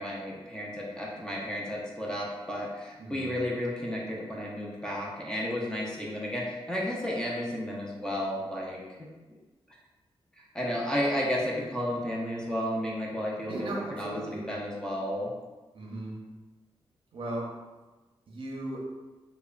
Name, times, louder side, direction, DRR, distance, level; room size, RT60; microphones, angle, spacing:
voice 1, 0.0-9.1 10.4-15.3, equal, 10° left, -4 dB, 0.4 m, -32 dB
voice 2, 3.0-3.4 13.5-14.4 15.7-16.2 17.1-17.5 18.3-18.9, right 1 dB, 60° right, -2 dB, 0.6 m, -36 dB
2.9 x 2.0 x 2.3 m, 1.2 s
wide cardioid pair, 125°, 10 cm